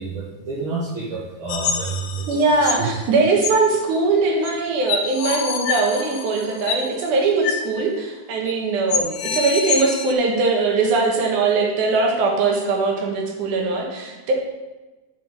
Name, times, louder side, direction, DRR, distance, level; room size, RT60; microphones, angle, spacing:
voice 1, 0.0-2.9, right 4 dB, 65° right, -5 dB, 1.4 m, -29 dB
sound 1, 1.5-2.9 3.4-3.5 4.4-4.5 4.9-6.9 7.4-7.6 7.9-8.0 8.5-8.6 8.9-10.1, left 6 dB, 80° left, 1.5 m, -26 dB
voice 2, 2.3-14.3, right 3 dB, 80° right, 1 dB, 2.7 m, -21 dB
7.6 x 5.3 x 5.2 m, 1.1 s
omnidirectional pair, 3.5 m